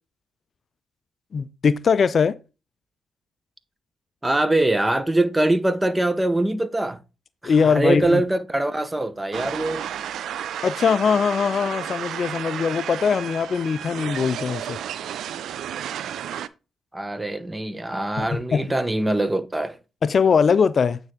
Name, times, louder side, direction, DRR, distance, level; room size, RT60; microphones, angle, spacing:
voice 1, 1.3-2.4 7.4-8.2 10.6-14.8 18.2-18.6 20.0-21.0, left 6 dB, 50° left, 0.3 m, -21 dB
voice 2, 4.2-7.0 7.4-9.8 16.9-19.8, right 1 dB, 15° right, 0.7 m, -23 dB
sound 1, 9.3-16.5, right 10 dB, 70° right, 0.3 m, -32 dB
8.8 x 3.5 x 3.6 m
supercardioid pair, 50°, 0 cm